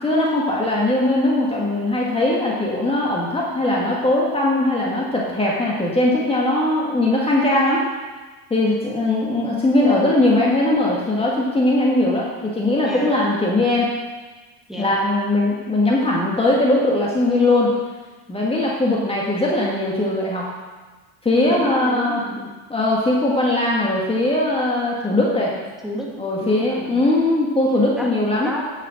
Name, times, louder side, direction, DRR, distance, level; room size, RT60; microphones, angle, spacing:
voice 1, 0.0-7.8 8.5-13.9 14.8-17.7 18.3-20.5 21.2-22.2 22.7-25.5 26.2-28.5, left 2 dB, 15° left, -4 dB, 1.8 m, -20 dB
voice 2, 12.8-13.2 14.7-15.0 21.5-22.5 25.8-27.0 28.0-28.1 28.4-28.6, equal, ahead, -3 dB, 2.1 m, -31 dB
9.4 x 6.6 x 6.5 m, 1.3 s
supercardioid pair, 105°, 38 cm